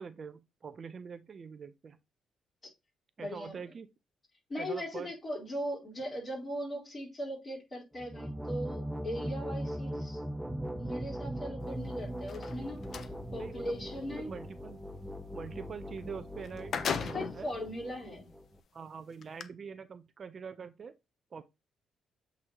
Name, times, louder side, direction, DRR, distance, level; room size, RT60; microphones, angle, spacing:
voice 1, 0.0-2.0 3.2-3.9 4.6-5.1 9.1-9.2 13.4-13.8 14.1-14.8 15.3-17.5 18.7-20.9 21.3-21.4, right 6 dB, 45° right, 0.6 m, -44 dB
voice 2, 3.2-3.6 4.5-10.2 10.8-14.3 17.0-18.3, equal, 35° left, 4.1 m, -39 dB
sound 1, 7.9-18.6, equal, 5° right, 0.7 m, -40 dB
sound 2, 12.2-13.1 16.0-16.1 16.4-17.5 18.2-18.3 19.2-19.4, left 6 dB, 55° left, 0.7 m, -35 dB
7.9 x 4.0 x 3.0 m
cardioid pair, 90°, 0 cm